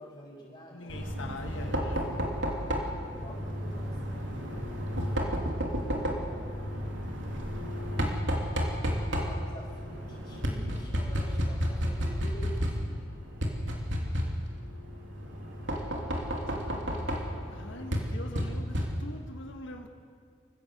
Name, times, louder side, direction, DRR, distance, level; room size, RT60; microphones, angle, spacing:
voice 1, 0.0-1.0 2.0-2.3 3.1-5.0 9.2-13.1, equal, 30° left, -9 dB, 5.1 m, -47 dB
voice 2, 0.7-2.5 17.4-19.9, left 1 dB, 80° left, 3 dB, 1.8 m, -43 dB
Knock, 0.9-19.3, equal, 80° right, 3.2 m, -32 dB
26.0 x 15.5 x 8.1 m, 2.2 s
head